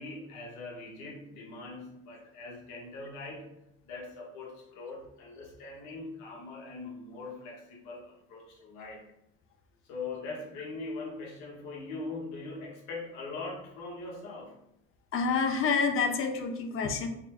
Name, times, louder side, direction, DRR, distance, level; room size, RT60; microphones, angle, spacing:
voice 1, 0.0-3.5 3.8-9.0 9.8-14.6, left 3 dB, 80° left, -3 dB, 1.2 m, -41 dB
voice 2, 15.1-17.1, left 5 dB, 45° left, 6 dB, 0.5 m, -28 dB
4.1 x 2.1 x 2.9 m, 0.80 s
cardioid pair, 110°, 29 cm